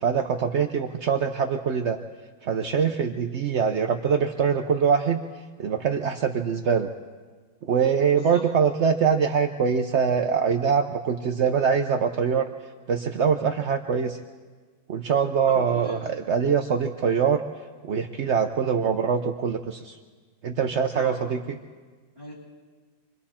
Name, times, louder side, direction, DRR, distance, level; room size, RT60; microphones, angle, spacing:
voice 1, 0.0-2.0 2.4-5.2 5.6-6.9 7.7-12.5 12.9-14.2 14.9-17.4 17.8-19.9 20.4-21.6, right 6 dB, 60° right, 5 dB, 0.7 m, -23 dB
voice 2, 15.5-16.0 20.9-21.3 22.1-22.3, equal, 30° left, -8 dB, 7.8 m, -40 dB
27.5 x 23.0 x 4.3 m, 1.5 s
omnidirectional pair, 2.1 m